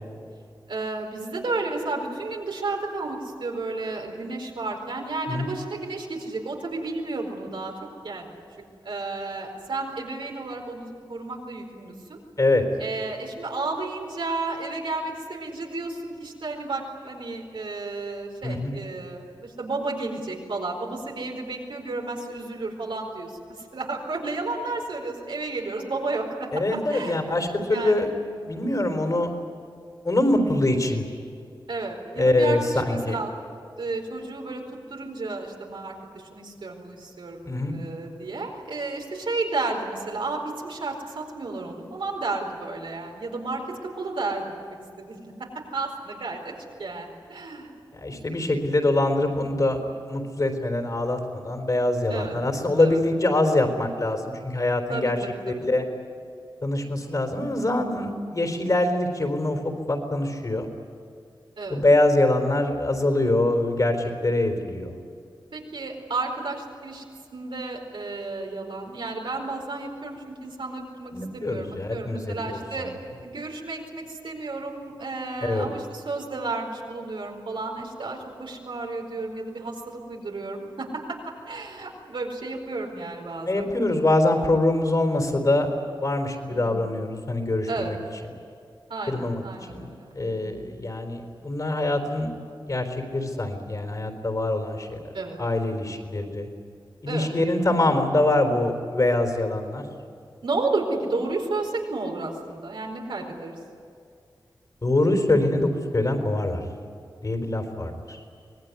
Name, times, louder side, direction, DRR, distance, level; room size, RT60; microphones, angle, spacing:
voice 1, 0.7-7.7 8.0-8.3 8.8-12.2 12.8-26.5 26.9-27.2 27.7-28.1 31.7-33.3 33.8-34.6 34.9-44.5 45.0-45.3 45.7-46.5 46.8-47.7 52.1-52.4 52.8-53.0 54.9-55.7 61.6-61.8 65.5-67.0 67.3-72.9 73.2-81.2 81.5-83.7 86.5-86.8 87.7-87.9 88.9-90.6 95.1-95.4 97.1-97.3 100.4-103.5, right 3 dB, 85° right, 1 dB, 4.6 m, -32 dB
voice 2, 18.4-18.7 26.5-28.1 28.5-29.3 30.0-31.0 32.1-33.2 37.4-37.8 47.9-49.8 50.1-55.2 55.5-55.8 56.6-60.7 61.7-65.0 71.1-72.4 72.8-72.9 75.4-75.7 83.5-85.7 86.0-88.0 89.1-89.4 89.7-89.9 90.1-92.3 92.7-95.1 95.4-96.5 97.0-99.9 104.8-106.6 107.2-108.2, left 2 dB, 45° left, 5 dB, 3.9 m, -24 dB
24.5 x 19.5 x 9.7 m, 2.3 s
wide cardioid pair, 90°, 8 cm